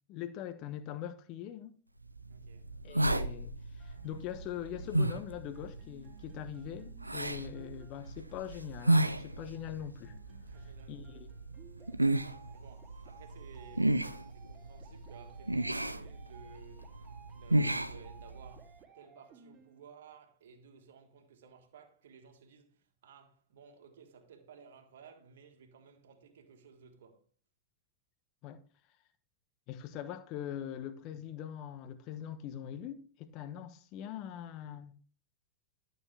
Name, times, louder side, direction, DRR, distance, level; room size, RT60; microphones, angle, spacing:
voice 1, 0.1-1.8 2.8-10.1 10.9-11.3 28.4-28.6 29.7-34.9, left 10 dB, 40° left, 1.0 m, -42 dB
sound 1, 2.1-18.7, right 1 dB, 85° right, 0.5 m, -34 dB
voice 2, 2.3-2.8 10.4-11.2 12.4-14.0 14.3-16.9 17.3-27.3, right 6 dB, 60° right, 1.6 m, -57 dB
sound 2, 3.8-19.8, right 5 dB, 25° right, 2.3 m, -58 dB
12.0 x 6.7 x 3.3 m
figure-of-eight pair, 90°, 0 cm